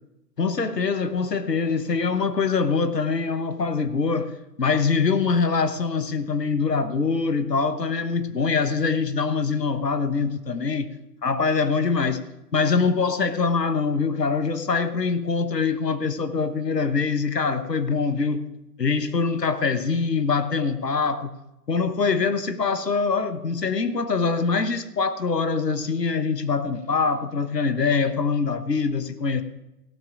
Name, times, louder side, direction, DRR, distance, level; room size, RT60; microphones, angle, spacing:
voice 1, 0.4-10.9 11.2-12.2 12.5-18.4 18.8-21.3 21.7-29.4, left 4 dB, 80° left, 10 dB, 1.1 m, -24 dB
17.0 x 12.0 x 2.5 m, 0.95 s
figure-of-eight pair, 135°, 48 cm